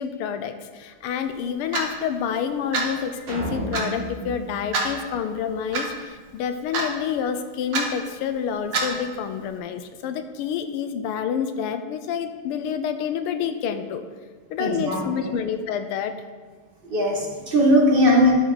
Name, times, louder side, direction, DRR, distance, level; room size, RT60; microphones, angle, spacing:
voice 1, 0.0-14.0 14.5-16.2, left 8 dB, 85° left, 9 dB, 1.6 m, -28 dB
Clock, 1.7-1.9 2.7-2.9 3.7-3.9 4.7-4.9 5.7-5.9 6.7-7.0 7.7-7.9 8.7-9.0, right 3 dB, 85° right, 2.4 m, -25 dB
sound 1, 3.3-5.7, right 2 dB, 50° right, 2.1 m, -33 dB
voice 2, 14.6-15.3 16.9-18.3, equal, 30° right, -2 dB, 1.3 m, -19 dB
13.0 x 5.1 x 4.1 m, 1.4 s
omnidirectional pair, 2.4 m